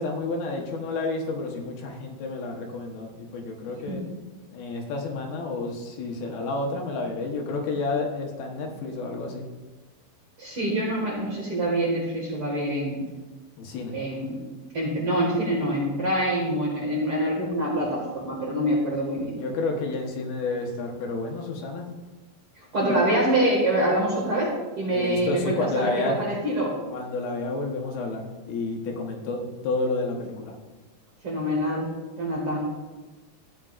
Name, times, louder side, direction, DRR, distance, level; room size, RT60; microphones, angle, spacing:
voice 1, 0.0-4.0 4.5-9.4 13.6-14.0 19.4-21.9 24.9-26.3 26.9-30.5, left 3 dB, 75° left, 1 dB, 3.0 m, -30 dB
voice 2, 10.4-13.0 13.9-14.4 14.7-19.3 22.7-24.5 24.8-26.7 31.2-31.9 32.2-32.8, right 1 dB, 50° right, -4 dB, 1.9 m, -25 dB
14.0 x 9.1 x 2.5 m, 1.2 s
omnidirectional pair, 4.6 m